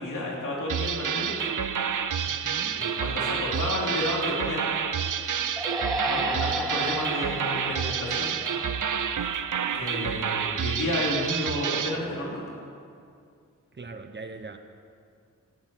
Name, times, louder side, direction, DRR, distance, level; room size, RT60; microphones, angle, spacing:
voice 1, 0.0-1.4 2.7-4.6 6.1-8.3 9.7-12.4, left 1 dB, 90° left, -4 dB, 3.0 m, -31 dB
sound 1, 0.7-12.0, right 7 dB, 80° right, 0.6 m, -29 dB
voice 2, 2.3-2.8 5.9-6.3 13.7-14.6, right 3 dB, 35° right, 7 dB, 0.9 m, -41 dB
sound 2, 5.6-9.0, right 1 dB, ahead, 1.8 m, -33 dB
15.0 x 8.0 x 9.0 m, 2.3 s
wide cardioid pair, 120°, 30 cm